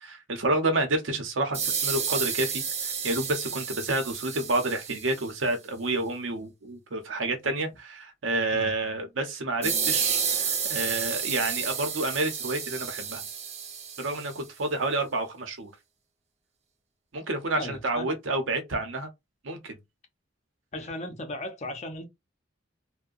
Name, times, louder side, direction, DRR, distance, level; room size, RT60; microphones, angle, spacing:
voice 1, 0.0-13.2 14.0-15.7 17.1-19.1 19.4-19.8, right 2 dB, 80° right, 0.8 m, -29 dB
sound 1, 1.5-5.3 9.6-14.4, right 6 dB, 35° right, 0.5 m, -31 dB
voice 2, 17.6-18.2 20.7-22.1, left 1 dB, 35° left, 0.6 m, -36 dB
2.7 x 2.1 x 2.4 m
head